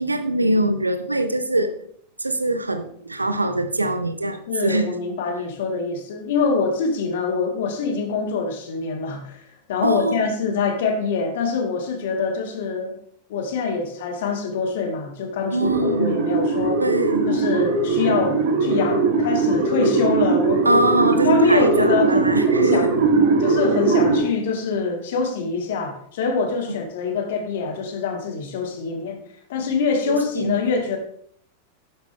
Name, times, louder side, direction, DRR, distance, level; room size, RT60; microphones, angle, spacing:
voice 1, 0.0-1.7 2.2-4.9 9.8-10.2 15.5-16.2 16.8-17.4 20.6-22.9 30.1-30.5, right 1 dB, 80° right, 10 dB, 1.0 m, -23 dB
voice 2, 4.5-9.4 9.7-13.0 13.3-16.8 17.3-20.8 21.2-22.9 23.4-29.2 29.5-31.0, left 4 dB, 55° left, 5 dB, 2.4 m, -25 dB
sound 1, 15.6-24.2, right 3 dB, 55° right, 3.0 m, -20 dB
11.5 x 11.0 x 3.6 m, 0.63 s
figure-of-eight pair, 90°, 0 cm